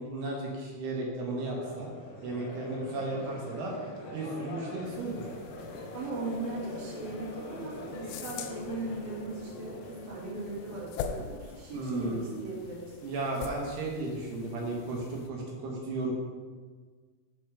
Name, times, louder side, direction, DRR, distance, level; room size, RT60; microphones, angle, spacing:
voice 1, 0.0-1.9 2.2-3.7 4.1-5.2 11.7-12.4 13.0-16.1, right 2 dB, 80° right, -2 dB, 3.6 m, -34 dB
Crowd, 1.4-11.6, left 1 dB, 70° left, 2.1 m, -43 dB
sound 1, 4.8-15.3, left 7 dB, 85° left, 2.1 m, -44 dB
voice 2, 5.9-12.9, right 2 dB, 45° right, -5 dB, 2.3 m, -38 dB
12.5 x 5.2 x 3.5 m, 1.5 s
omnidirectional pair, 4.7 m